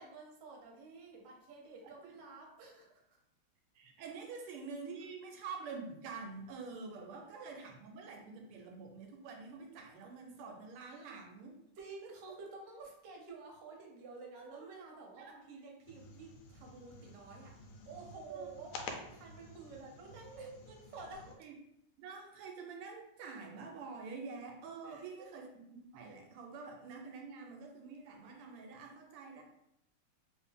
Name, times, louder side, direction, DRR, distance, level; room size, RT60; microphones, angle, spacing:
voice 1, 0.0-3.2 11.0-11.1 11.8-21.4 24.8-25.3, right 4 dB, 65° right, 0 dB, 1.4 m, -51 dB
voice 2, 3.7-11.5 14.3-14.7 15.1-15.3 18.3-18.5 21.4-21.6 22.0-29.4, right 4 dB, 85° right, 2 dB, 1.5 m, -47 dB
sound 1, 15.8-21.4, left 3 dB, 80° left, 1.4 m, -50 dB
3.4 x 2.6 x 3.6 m, 0.77 s
omnidirectional pair, 2.4 m